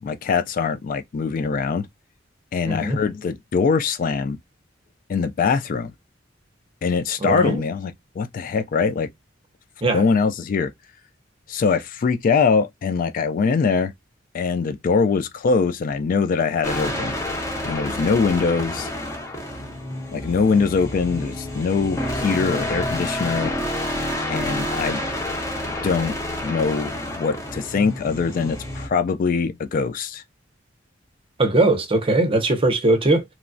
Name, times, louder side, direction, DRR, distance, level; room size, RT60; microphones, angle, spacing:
voice 1, 0.0-1.9 2.5-4.4 5.1-5.9 6.8-9.1 9.9-10.7 11.5-13.9 14.3-17.1 17.6-18.9 20.1-23.5 24.3-25.0 25.8-26.2 26.4-30.2, left 5 dB, 45° left, 0.3 m, -22 dB
voice 2, 2.7-3.0 7.2-7.6 9.8-10.0 31.4-33.2, right 2 dB, 30° right, 0.6 m, -20 dB
sound 1, 16.6-28.9, left 1 dB, 15° left, 0.7 m, -29 dB
3.0 x 2.2 x 2.5 m
head